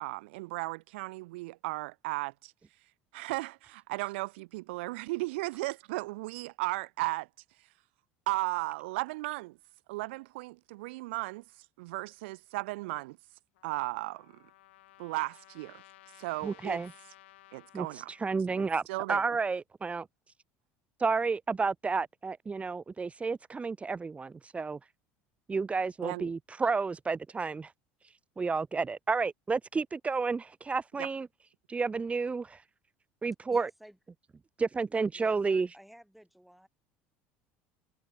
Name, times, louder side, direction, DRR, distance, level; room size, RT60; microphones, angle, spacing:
voice 1, 0.0-2.5 3.1-7.3 8.3-9.6 9.9-11.4 11.8-13.2 13.6-14.4 15.0-15.8 16.2-16.8 17.5-18.1 18.6-19.2 26.0-26.3 31.0-31.1, right 22 dB, 75° right, 0.9 m, -35 dB
Trumpet, 13.5-18.2, left 18 dB, 80° left, 1.7 m, -57 dB
voice 2, 16.4-16.9 17.7-18.8 19.1-20.1 21.0-24.8 25.5-27.7 28.0-31.3 31.7-32.6 33.2-33.7 34.6-35.7, right 4 dB, 20° right, 0.6 m, -31 dB
voice 3, 33.5-34.0 35.1-36.7, equal, ahead, 5.7 m, -53 dB
hypercardioid pair, 80°, 6 cm